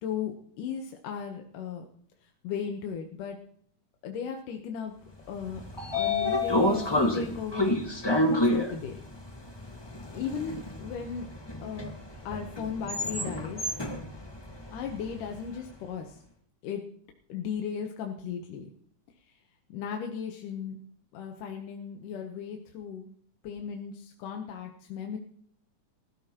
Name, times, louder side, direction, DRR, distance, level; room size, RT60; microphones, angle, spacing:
voice 1, 0.0-1.9 2.4-3.4 4.0-4.9 5.3-5.6 5.9-8.0 8.3-9.0 10.1-11.3 11.6-11.9 12.3-13.6 14.7-16.2 16.6-16.8 17.3-18.7 19.7-20.8 21.1-23.1 23.4-25.2, left 7 dB, 85° left, 2 dB, 2.7 m, -36 dB
Train / Sliding door, 5.3-15.5, left 1 dB, 30° left, 0.4 m, -29 dB
20.0 x 14.0 x 3.0 m, 0.64 s
omnidirectional pair, 3.6 m